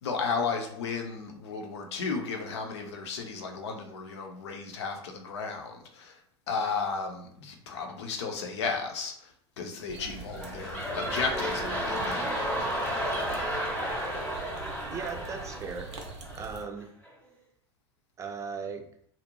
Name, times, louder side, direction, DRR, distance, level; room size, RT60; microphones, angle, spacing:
voice 1, 0.0-6.2 6.5-12.7, left 5 dB, 75° left, 3 dB, 0.5 m, -34 dB
sound 1, 9.9-16.6, right 4 dB, 85° right, 0.6 m, -44 dB
sound 2, 10.0-16.5 17.1-17.2, equal, 10° left, 0.8 m, -33 dB
voice 2, 14.9-15.9 16.3-16.9 18.2-18.9, right 5 dB, 20° right, 5 dB, 0.4 m, -37 dB
2.5 x 2.0 x 2.9 m, 0.64 s
hypercardioid pair, 85°, 14 cm